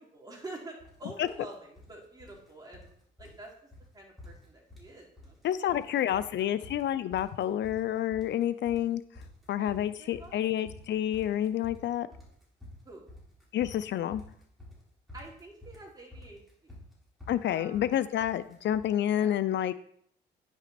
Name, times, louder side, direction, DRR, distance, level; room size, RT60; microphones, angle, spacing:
voice 1, 0.0-2.9 3.2-5.4 5.7-6.5 9.6-10.4 12.8-13.1 15.1-16.7 17.4-17.8 19.1-19.3, right 2 dB, 20° right, -1 dB, 2.9 m, -48 dB
sound 1, 0.8-1.0 1.3-1.9 2.2-2.9 3.2-3.4 3.7-3.9 4.2-4.9 5.2-5.8 6.1-18.9, left 1 dB, ahead, 4.3 m, -50 dB
voice 2, 5.4-9.0 9.5-12.1 13.5-14.2 17.3-19.7, left 11 dB, 65° left, 15 dB, 0.5 m, -29 dB
9.8 x 6.0 x 4.3 m, 0.65 s
cardioid pair, 90°, 20 cm